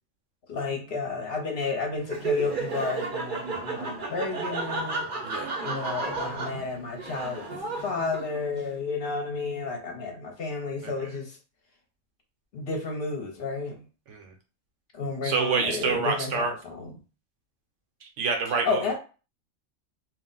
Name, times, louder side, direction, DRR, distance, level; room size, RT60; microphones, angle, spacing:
voice 1, 0.5-5.1 5.6-7.4 7.8-11.4 12.5-13.9 14.9-16.9 18.6-18.9, left 4 dB, 60° left, 2 dB, 0.8 m, -31 dB
Laughter, 2.0-8.6, right 3 dB, 50° right, 0.7 m, -33 dB
voice 2, 15.2-16.5 18.0-18.8, right 5 dB, 80° right, 3 dB, 1.0 m, -27 dB
2.4 x 2.1 x 3.8 m, 0.35 s
omnidirectional pair, 1.3 m